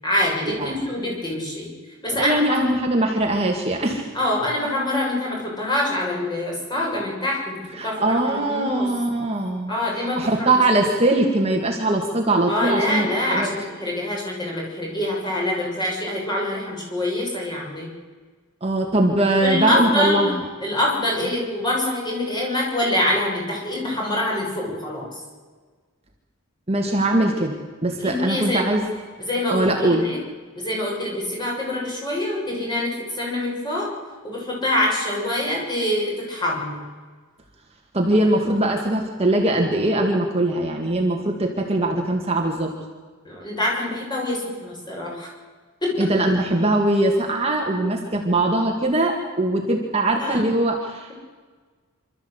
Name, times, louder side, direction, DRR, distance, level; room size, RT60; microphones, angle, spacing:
voice 1, 0.0-1.7 2.0-2.7 4.1-8.9 9.7-10.5 12.5-17.9 19.4-20.3 20.6-25.2 28.0-28.9 29.2-30.2 30.6-33.9 34.2-36.8 43.2-45.3 45.8-46.1 46.7-46.8 50.2-50.4, left 1 dB, 20° left, -3 dB, 7.3 m, -25 dB
voice 2, 2.1-4.1 7.8-13.5 18.6-20.3 26.7-28.8 29.5-30.1 37.9-42.7 46.0-51.1, right 1 dB, 30° right, 1 dB, 2.1 m, -21 dB
27.0 x 13.5 x 8.2 m, 1.5 s
head